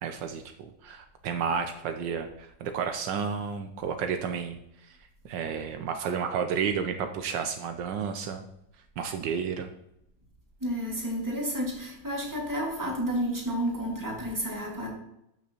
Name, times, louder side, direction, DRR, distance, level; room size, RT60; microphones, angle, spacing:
voice 1, 0.0-5.0 5.2-8.5 9.0-9.7, right 6 dB, 75° right, 7 dB, 1.3 m, -32 dB
voice 2, 10.6-14.9, equal, 10° right, -2 dB, 1.8 m, -31 dB
12.5 x 6.0 x 2.9 m, 0.80 s
omnidirectional pair, 2.0 m